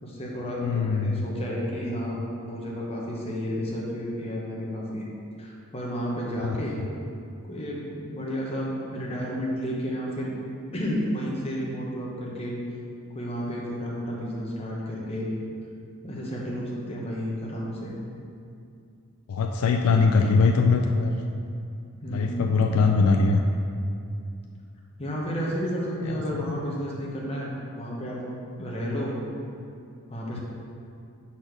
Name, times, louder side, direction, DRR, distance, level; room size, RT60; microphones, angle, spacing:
voice 1, 0.0-5.1 5.4-6.8 7.4-10.3 10.7-12.6 13.1-15.3 16.0-17.9 22.0-22.6 25.0-28.2 28.6-29.1 30.1-30.4, equal, 25° left, -4 dB, 1.0 m, -31 dB
voice 2, 0.6-1.3 6.4-6.6 19.3-21.2 22.1-23.4 26.1-26.6 30.3-30.4, left 4 dB, 70° left, 3 dB, 0.4 m, -22 dB
5.0 x 4.2 x 6.0 m, 2.5 s
head